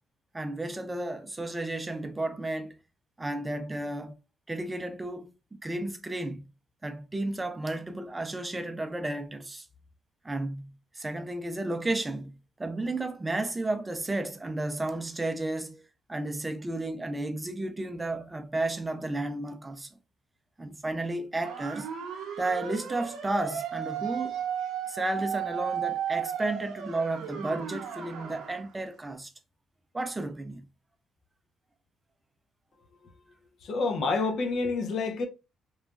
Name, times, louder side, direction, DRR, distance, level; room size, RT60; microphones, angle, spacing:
voice 1, 0.3-2.8 3.2-4.2 4.5-6.4 6.8-9.7 10.2-12.3 12.6-15.8 16.1-19.9 20.6-21.9 22.4-24.4 24.9-29.3 29.9-30.6, right 2 dB, 20° right, 0.4 m, -33 dB
sound 1, 21.4-28.6, right 8 dB, 85° right, 0.6 m, -35 dB
voice 2, 33.6-35.3, left 3 dB, 65° left, 0.6 m, -28 dB
3.0 x 2.2 x 2.3 m
cardioid pair, 90°, 0 cm